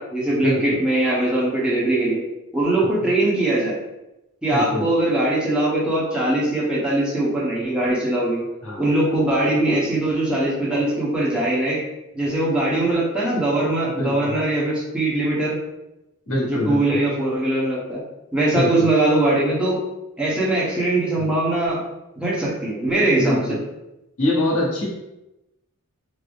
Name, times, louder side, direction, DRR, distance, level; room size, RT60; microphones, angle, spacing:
voice 1, 0.0-2.2 2.5-3.8 4.4-8.4 8.8-11.8 12.1-15.6 16.4-18.0 18.3-19.8 20.2-21.8 22.2-23.6, right 2 dB, 5° right, -7 dB, 0.9 m, -21 dB
voice 2, 4.5-4.9 8.6-8.8 13.8-14.4 16.3-17.0 18.5-18.9 21.2-21.3 23.2-23.6 24.2-24.8, left 1 dB, 80° left, -4 dB, 1.1 m, -24 dB
3.8 x 2.0 x 3.4 m, 0.92 s
head